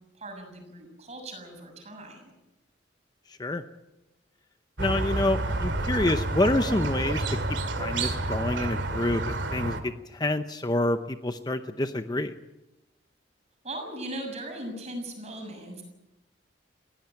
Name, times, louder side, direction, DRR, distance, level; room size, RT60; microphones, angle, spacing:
voice 1, 0.2-2.3 13.6-15.8, right 1 dB, 35° right, 4 dB, 6.7 m, -39 dB
voice 2, 4.8-7.4 7.7-12.3, left 1 dB, 20° left, 9 dB, 0.7 m, -27 dB
Squeak, 4.8-9.8, right 2 dB, 80° right, 2.4 m, -29 dB
20.0 x 16.5 x 9.0 m, 0.99 s
head